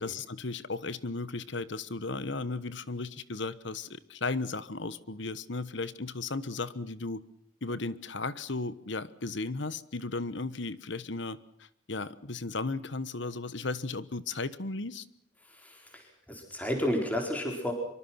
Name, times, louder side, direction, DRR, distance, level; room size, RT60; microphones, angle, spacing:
voice 1, 0.0-7.2 7.6-15.1, left 3 dB, 60° left, 16 dB, 1.2 m, -35 dB
voice 2, 15.4-17.7, left 1 dB, 10° left, 2 dB, 4.5 m, -32 dB
25.0 x 24.5 x 5.9 m, 0.69 s
head